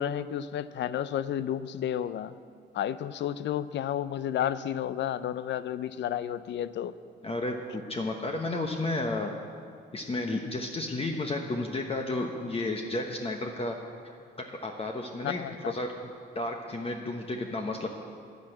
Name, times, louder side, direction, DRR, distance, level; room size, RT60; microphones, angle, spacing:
voice 1, 0.0-2.3 2.7-6.9 15.2-15.7, left 10 dB, 65° left, 15 dB, 0.5 m, -31 dB
voice 2, 7.2-9.3 9.9-13.8 14.0-14.1 14.5-15.9 16.3-17.9, left 2 dB, 30° left, 3 dB, 1.0 m, -32 dB
10.5 x 10.0 x 7.8 m, 2.4 s
cardioid pair, 90°, 20 cm